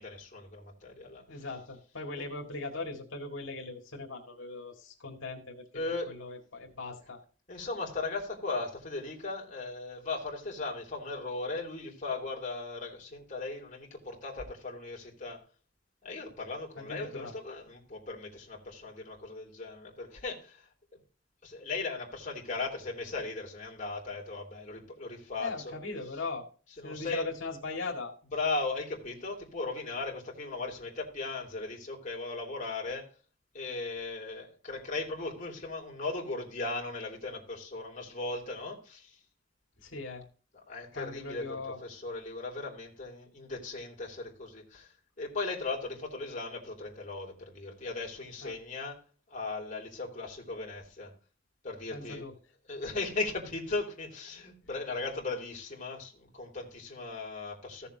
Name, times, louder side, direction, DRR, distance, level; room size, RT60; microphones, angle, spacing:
voice 1, 0.0-1.4 2.2-2.3 5.7-6.1 7.5-15.4 16.0-20.7 21.4-25.8 26.8-27.3 28.3-33.1 33.5-39.2 40.7-49.0 49.3-51.1 51.6-52.3 52.7-57.9, left 3 dB, 40° left, 2.9 m, -37 dB
voice 2, 1.3-7.2 16.8-17.3 25.4-26.5 26.8-28.1 39.8-40.2 40.9-41.8 48.4-48.6 51.9-52.3, left 3 dB, 80° left, 2.1 m, -39 dB
15.0 x 6.9 x 2.9 m
head